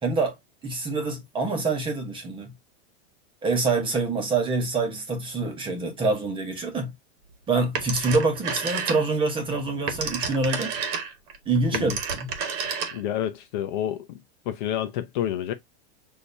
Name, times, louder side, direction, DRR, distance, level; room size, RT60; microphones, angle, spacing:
voice 1, 0.0-0.3 0.6-2.5 3.4-6.9 7.5-10.7 11.5-12.3, right 3 dB, 15° right, 1.1 m, -26 dB
Telephone, 7.8-9.3 9.7-13.2, right 6 dB, 40° right, 1.2 m, -30 dB
voice 2, 12.9-14.2 14.5-15.5, left 11 dB, 45° left, 0.6 m, -29 dB
6.5 x 2.7 x 2.6 m
supercardioid pair, 160°, 34 cm